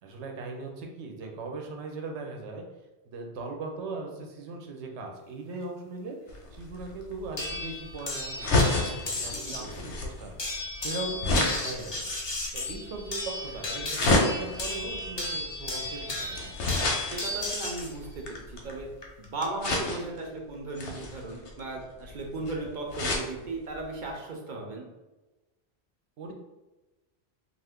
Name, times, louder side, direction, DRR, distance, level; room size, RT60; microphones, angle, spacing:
voice 1, 0.0-2.6 3.1-12.1 12.5-16.4 26.2-26.3, right 3 dB, 90° right, 2 dB, 0.9 m, -39 dB
Paper Crunch, 6.3-18.9 19.6-20.2 20.7-23.3 23.8-23.9 24.1-24.2, left 2 dB, 90° left, 0.9 m, -30 dB
sound 1, 7.4-9.7 10.4-17.9 19.0-19.4, left 2 dB, 40° left, 0.4 m, -35 dB
voice 2, 9.5-10.0 17.1-18.9 19.2-24.9, right 2 dB, 55° right, 0 dB, 0.6 m, -36 dB
2.5 x 2.4 x 3.4 m, 1.1 s
omnidirectional pair, 1.1 m